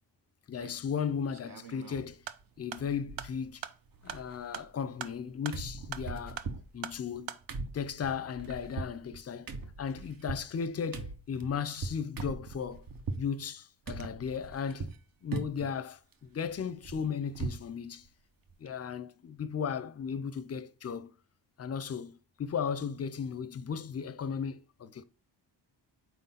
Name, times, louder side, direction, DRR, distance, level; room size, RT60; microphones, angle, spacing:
voice 1, 0.5-2.2 2.6-3.6 4.0-6.4 6.7-7.4 7.7-9.5 9.8-12.9 13.2-14.9 15.2-18.1 18.6-21.1 21.6-25.0, left 7 dB, 35° left, 0.5 m, -36 dB
sound 1, 0.6-1.0 1.3-2.1 2.4-2.5 2.8-3.6 3.9-5.2 5.5-13.3 13.9-15.0 15.3-15.8 16.1-17.7 18.1-18.2 18.5-18.7, right 4 dB, 50° right, 0.9 m, -41 dB
sound 2, 2.1-7.4, right 10 dB, 80° right, 0.6 m, -44 dB
4.4 x 4.0 x 5.6 m
cardioid pair, 105°, 44 cm